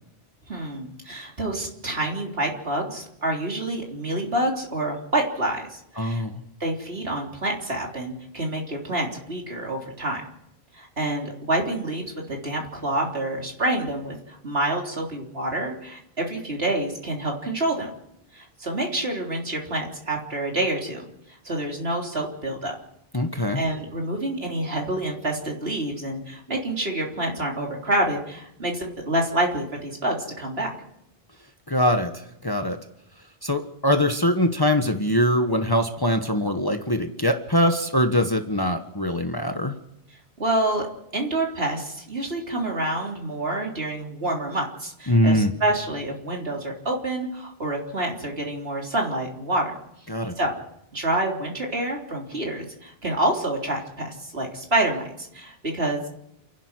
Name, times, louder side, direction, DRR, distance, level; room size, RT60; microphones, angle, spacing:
voice 1, 0.5-6.2 6.6-10.2 10.7-17.9 18.3-22.7 23.5-30.7 40.4-40.9 41.1-49.7 50.4-50.5 50.9-56.1, right 1 dB, 75° right, 0 dB, 3.9 m, -27 dB
voice 2, 6.0-6.4 23.1-23.6 31.7-32.8 33.4-39.7 45.1-45.5 50.1-50.3, left 1 dB, 20° left, 6 dB, 1.3 m, -22 dB
29.5 x 10.5 x 9.8 m, 0.81 s
omnidirectional pair, 1.0 m